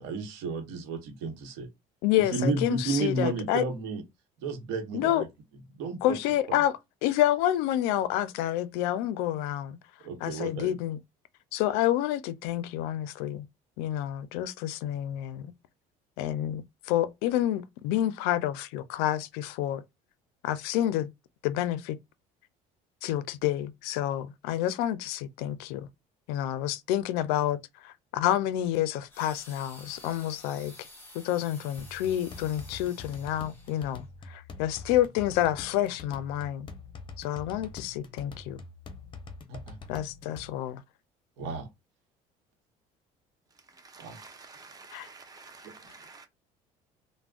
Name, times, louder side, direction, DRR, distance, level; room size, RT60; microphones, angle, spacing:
voice 1, 0.0-1.7 2.2-4.0 4.4-5.3 5.8-6.2 6.5-6.6 10.0-10.8 39.5-39.8 41.4-41.7 44.0-44.2, right 4 dB, 90° right, 0.9 m, -32 dB
voice 2, 2.0-3.6 4.9-5.2 6.0-6.7 7.0-9.8 10.2-11.0 11.5-13.5 13.8-15.5 16.2-19.8 20.4-21.1 21.4-22.0 23.0-25.9 26.3-30.9 31.1-36.7 37.2-38.6 39.9-40.8 44.9-45.1, left 12 dB, 85° left, 0.4 m, -29 dB
sound 1, 29.1-34.0 34.7-34.9, left 1 dB, 15° left, 1.3 m, -51 dB
sound 2, 31.8-40.5, left 4 dB, 30° left, 0.6 m, -45 dB
voice 3, 43.5-46.3, right 4 dB, 25° right, 0.8 m, -50 dB
3.5 x 2.0 x 2.3 m
cardioid pair, 110°, 16 cm